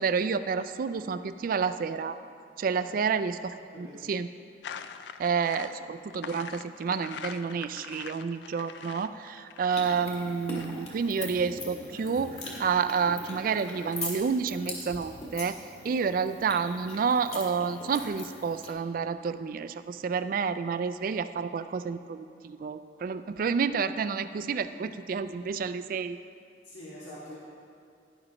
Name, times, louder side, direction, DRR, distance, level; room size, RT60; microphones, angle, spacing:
voice 1, 0.0-2.2 2.6-4.3 5.2-26.2, right 5 dB, 50° right, 12 dB, 0.3 m, -29 dB
voice 2, 3.7-4.0 26.6-27.4, left 1 dB, 85° left, -8 dB, 1.8 m, -45 dB
sound 1, 4.6-11.3, left 7 dB, 65° left, 0.4 m, -43 dB
sound 2, 9.7-18.7, left 2 dB, 35° left, 1.9 m, -41 dB
11.5 x 10.5 x 3.0 m, 2.4 s
head